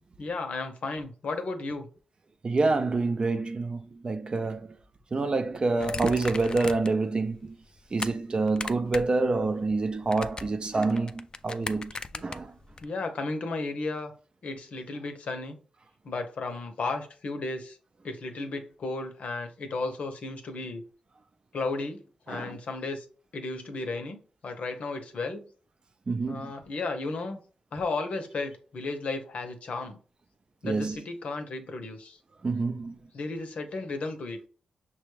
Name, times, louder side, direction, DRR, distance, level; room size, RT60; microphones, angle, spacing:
voice 1, 0.2-1.9 12.1-12.3 12.8-14.1 14.4-15.6 16.0-17.8 18.0-20.8 21.5-23.1 23.3-25.4 26.3-27.4 27.7-30.0 30.6-32.2 33.1-34.5, left 3 dB, 70° left, 0.7 m, -34 dB
voice 2, 2.4-4.7 5.1-7.6 7.9-11.9 12.2-12.5 22.3-22.6 26.1-26.5 30.6-31.0 32.4-33.0, right 3 dB, 40° right, 0.5 m, -27 dB
sound 1, 5.8-7.0 7.4-8.1 8.5-9.2 9.4-12.8, left 3 dB, 35° left, 0.3 m, -38 dB
5.8 x 2.3 x 3.1 m
cardioid pair, 65°, 2 cm